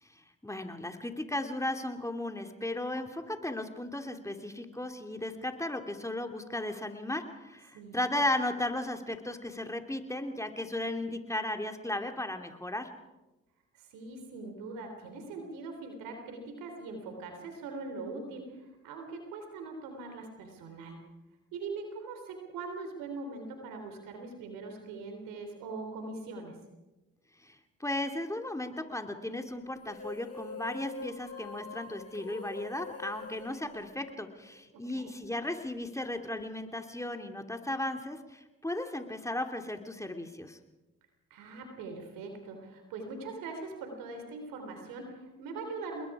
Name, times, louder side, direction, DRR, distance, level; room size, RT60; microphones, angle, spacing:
voice 1, 0.0-12.9 27.4-40.6, left 1 dB, 10° left, 5 dB, 2.8 m, -35 dB
voice 2, 13.7-21.0 21.5-26.6 34.7-35.1 41.3-46.1, right 3 dB, 85° right, 5 dB, 3.6 m, -42 dB
sound 1, 29.8-34.5, left 3 dB, 50° left, 5.3 m, -44 dB
28.0 x 21.0 x 4.9 m, 1.1 s
supercardioid pair, 50°, 33 cm